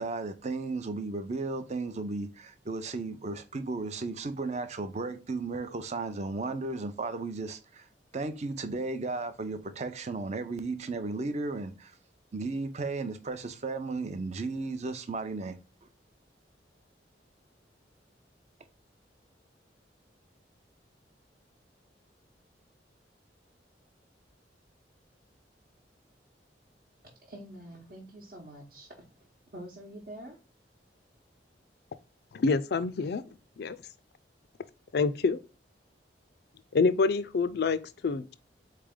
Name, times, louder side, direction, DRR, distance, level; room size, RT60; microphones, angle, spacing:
voice 1, 0.0-7.9 8.1-11.9 12.3-15.6, right 3 dB, 40° right, 0.6 m, -34 dB
voice 2, 27.2-29.1 29.5-30.4, right 1 dB, 60° right, 1.0 m, -46 dB
voice 3, 32.3-33.2 33.6-33.8 34.9-35.4 36.7-38.3, left 4 dB, 65° left, 0.4 m, -27 dB
4.2 x 3.3 x 3.6 m
head